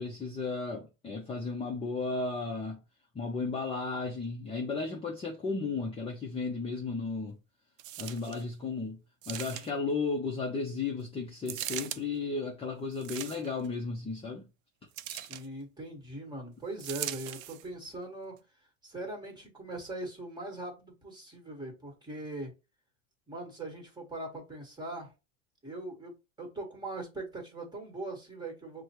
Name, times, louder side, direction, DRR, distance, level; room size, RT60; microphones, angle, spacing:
voice 1, 0.0-2.8 3.1-7.4 8.0-9.0 9.3-14.5, left 4 dB, 15° left, 0.7 m, -34 dB
sound 1, 7.8-8.4 9.2-9.9 11.5-12.0 12.9-13.7 15.0-15.5 16.8-17.7 18.4-18.5, right 13 dB, 80° right, 0.6 m, -39 dB
voice 2, 15.1-18.4 18.8-22.5 23.3-25.1 25.6-28.8, right 2 dB, 10° right, 1.6 m, -41 dB
6.0 x 2.2 x 3.0 m
supercardioid pair, 125°, 39 cm